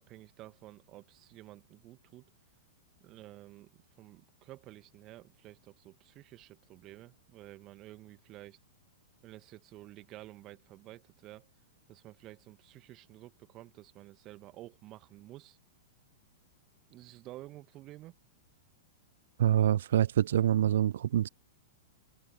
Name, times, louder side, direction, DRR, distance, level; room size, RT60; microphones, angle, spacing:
voice 1, 0.0-2.3 3.0-8.6 9.2-11.5 11.9-15.6 16.9-18.1, right 16 dB, 35° right, 1.9 m, -51 dB
voice 2, 19.4-21.3, right 11 dB, 60° right, 0.5 m, -26 dB
figure-of-eight pair, 100°, 0 cm